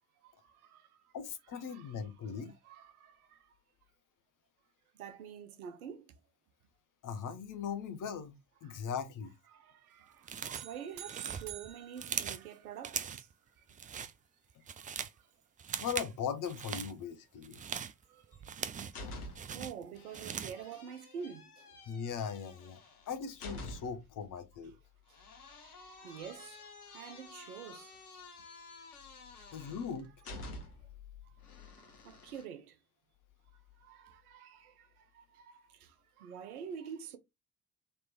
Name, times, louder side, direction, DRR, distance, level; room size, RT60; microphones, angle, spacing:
voice 1, 0.2-0.9 1.6-1.9 2.3-3.5 4.9-6.1 8.6-8.8 9.5-13.3 14.8-14.9 18.1-18.3 19.5-21.7 25.5-28.0 29.4-29.7 30.6-30.8 31.6-32.8 33.8-37.2, right 8 dB, 80° right, 0.7 m, -48 dB
voice 2, 1.1-2.5 7.0-8.3 8.6-9.3 15.8-17.6 21.9-22.8 23.1-24.7 29.5-30.1, left 7 dB, 45° left, 0.9 m, -39 dB
sound 1, 10.2-10.7 11.0-12.5 12.8-13.3 13.7-14.1 14.5-15.2 15.6-16.1 16.4-16.9 17.4-19.0 19.3-20.6, right 7 dB, 20° right, 0.4 m, -40 dB
sound 2, 10.5-13.0, right 11 dB, 40° right, 0.7 m, -50 dB
sound 3, 18.3-19.6 20.0-24.1 25.1-31.0 31.4-32.5, left 2 dB, 85° left, 0.8 m, -50 dB
3.3 x 3.1 x 4.4 m
figure-of-eight pair, 50°, 44 cm